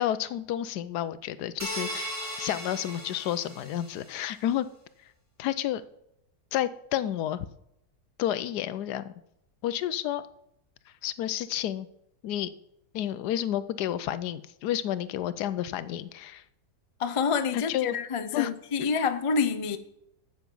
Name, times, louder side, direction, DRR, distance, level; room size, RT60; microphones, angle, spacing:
voice 1, 0.0-4.7 5.4-5.8 6.5-7.5 8.2-9.1 9.6-10.2 11.0-11.9 12.2-12.5 12.9-16.4 17.5-17.9 18.3-18.5, left 12 dB, 85° left, 15 dB, 1.2 m, -30 dB
sound 1, 1.6-4.1, equal, 10° right, 2.4 m, -37 dB
voice 2, 17.0-19.8, left 5 dB, 60° left, 11 dB, 0.3 m, -27 dB
9.4 x 8.0 x 5.4 m, 0.79 s
omnidirectional pair, 1.7 m